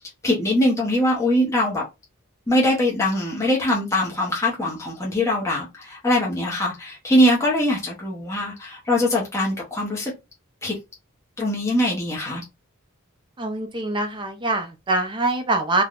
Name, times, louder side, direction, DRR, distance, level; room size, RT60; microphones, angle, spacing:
voice 1, 0.2-1.8 2.5-10.1 10.6-10.7 11.4-12.4, left 1 dB, 15° left, 0.7 m, -22 dB
voice 2, 13.4-15.8, right 2 dB, 20° right, 0.5 m, -24 dB
3.3 x 2.1 x 2.3 m
head